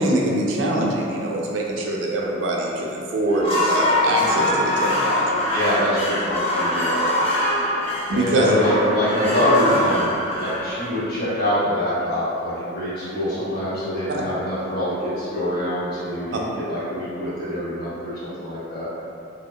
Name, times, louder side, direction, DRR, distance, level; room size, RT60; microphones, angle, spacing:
voice 1, 0.0-5.5 8.1-8.5 14.1-14.2 16.3-16.4, right 1 dB, 75° right, -2 dB, 0.4 m, -23 dB
sound 1, 3.3-11.4, left 1 dB, 30° left, 0.4 m, -23 dB
voice 2, 5.5-7.0 8.1-16.4 16.7-18.9, equal, 50° left, -11 dB, 1.0 m, -24 dB
2.7 x 2.0 x 2.2 m, 2.6 s
head